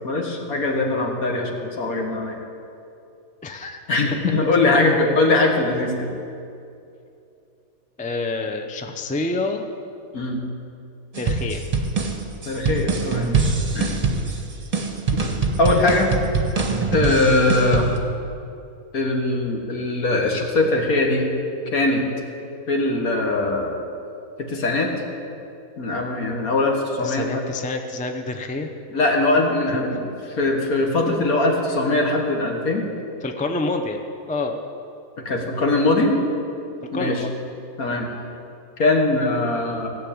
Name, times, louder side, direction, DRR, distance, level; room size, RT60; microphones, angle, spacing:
voice 1, 0.0-2.4 3.9-6.1 10.1-10.4 12.5-14.0 15.1-15.2 15.6-16.1 16.9-17.9 18.9-21.3 21.7-22.1 22.7-23.8 24.4-24.9 25.8-27.4 28.9-32.8 35.3-36.2 36.9-37.2 37.8-38.1 38.8-39.9, left 2 dB, 65° left, 1 dB, 2.0 m, -21 dB
voice 2, 3.4-3.8 4.6-5.1 8.0-9.7 11.2-11.6 14.1-14.3 27.0-28.7 29.8-29.9 31.1-31.2 33.2-34.0 34.3-34.6 36.9-37.4, left 2 dB, 10° left, 4 dB, 0.3 m, -28 dB
sound 1, 11.1-18.0, right 4 dB, 25° right, 1.1 m, -23 dB
16.5 x 6.5 x 8.7 m, 2.6 s
omnidirectional pair, 1.6 m